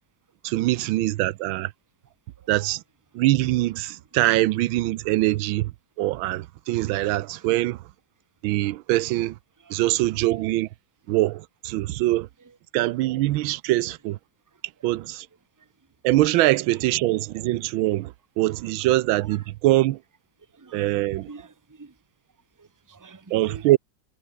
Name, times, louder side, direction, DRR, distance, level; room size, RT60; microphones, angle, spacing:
voice 1, 0.4-1.7 2.5-2.8 3.1-5.7 6.0-7.8 8.4-9.3 9.7-10.7 11.1-12.3 12.7-14.2 14.8-15.3 16.0-20.0 20.7-21.3 23.3-23.8, right 17 dB, 85° right, 1.4 m, -23 dB
voice 2, 20.5-20.9 21.3-21.9 22.6-23.7, right 4 dB, 15° right, 0.6 m, -47 dB
omnidirectional pair, 2.2 m